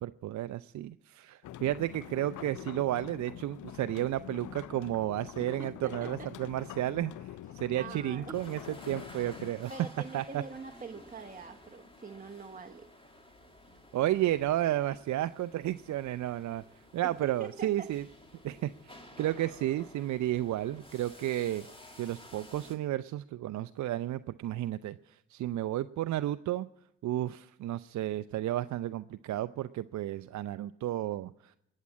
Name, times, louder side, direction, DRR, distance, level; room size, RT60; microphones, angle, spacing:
voice 1, 0.0-7.1 7.5-9.7 10.1-10.4 13.9-16.6 16.9-18.0 18.4-21.6 22.0-26.7 27.0-31.5, right 13 dB, 60° right, 12 dB, 0.5 m, -32 dB
sound 1, 1.4-9.5, left 12 dB, 65° left, 0.6 m, -45 dB
voice 2, 5.4-6.3 7.5-8.4 9.7-12.9 17.2-17.9, right 4 dB, 25° right, 5 dB, 1.0 m, -44 dB
sound 2, 8.3-22.8, left 1 dB, 15° left, 2.7 m, -53 dB
20.5 x 7.4 x 8.6 m, 0.88 s
supercardioid pair, 55°, 33 cm